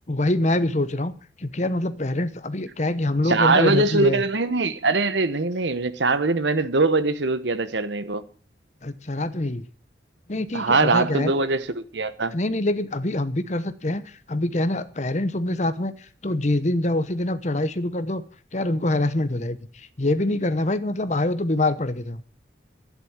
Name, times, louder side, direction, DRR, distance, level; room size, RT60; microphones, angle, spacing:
voice 1, 0.1-1.1 1.4-4.2 8.8-9.7 10.3-11.3 12.3-18.2 18.5-22.2, left 1 dB, 40° left, 1.0 m, -25 dB
voice 2, 3.3-8.2 10.5-12.3, right 3 dB, 75° right, 1.0 m, -22 dB
11.5 x 11.0 x 7.3 m
head